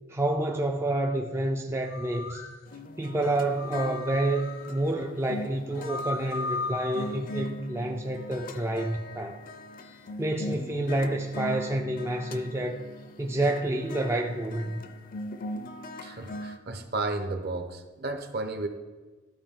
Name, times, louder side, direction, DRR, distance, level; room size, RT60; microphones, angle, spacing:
voice 1, 0.1-2.5 3.0-9.4 10.2-12.8 13.2-14.8, right 1 dB, 15° right, 0.3 m, -29 dB
sound 1, 1.9-2.6 3.6-4.8 5.7-7.2, left 3 dB, 75° left, 0.8 m, -36 dB
sound 2, 2.7-16.6, left 1 dB, 40° left, 0.5 m, -40 dB
voice 2, 16.0-18.7, right 2 dB, 50° right, 0.8 m, -33 dB
12.5 x 4.8 x 3.7 m
head